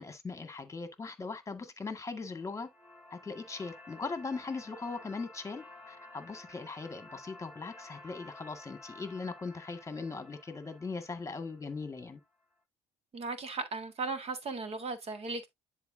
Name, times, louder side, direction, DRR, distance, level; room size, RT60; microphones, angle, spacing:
voice 1, 0.0-2.7 3.1-12.2, left 4 dB, 20° left, 1.8 m, -40 dB
sound 1, 2.2-12.3, left 2 dB, 10° right, 4.9 m, -53 dB
voice 2, 13.1-15.5, right 3 dB, 40° right, 1.6 m, -36 dB
10.5 x 4.4 x 2.7 m
supercardioid pair, 80°, 15 cm